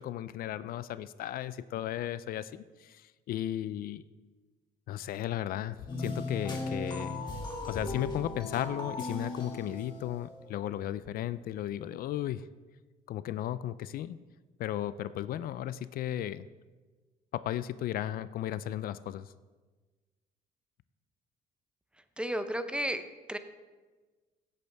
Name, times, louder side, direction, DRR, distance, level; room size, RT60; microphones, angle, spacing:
voice 1, 0.0-4.0 4.9-7.2 7.7-12.5 13.1-14.2 14.6-16.5 17.3-19.3, left 12 dB, 60° left, 15 dB, 0.4 m, -35 dB
sound 1, 5.9-10.5, left 2 dB, 25° left, 2.2 m, -37 dB
voice 2, 22.2-23.4, equal, 5° right, 10 dB, 0.6 m, -33 dB
16.0 x 8.2 x 3.4 m, 1.3 s
cardioid pair, 110°, 17 cm